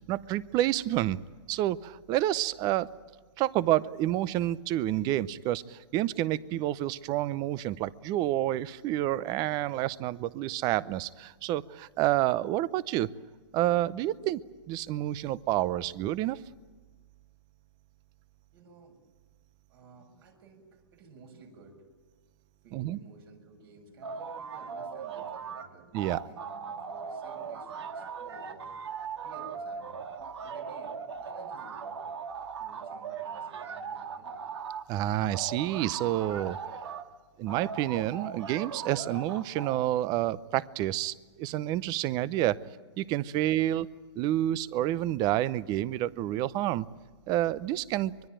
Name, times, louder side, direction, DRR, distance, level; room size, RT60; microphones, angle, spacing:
voice 1, 0.1-1.2 1.5-2.9 3.4-13.1 13.5-14.4 14.7-16.4 22.7-23.0 25.9-26.2 34.9-36.6 37.4-42.6 43.0-43.9 44.2-46.9 47.3-48.1, right 14 dB, 30° right, 19 dB, 0.7 m, -29 dB
voice 2, 18.5-19.0 19.7-21.8 22.6-25.9 26.2-28.8 29.2-30.1 30.4-32.1 32.6-34.5 42.6-42.8, right 3 dB, 55° right, 3 dB, 7.0 m, -54 dB
sound 1, 24.0-25.7 25.9-34.9 35.3-37.1 37.5-39.8, right 6 dB, 75° right, 1.9 m, -39 dB
24.5 x 22.0 x 9.0 m, 1.4 s
hypercardioid pair, 140°, 14 cm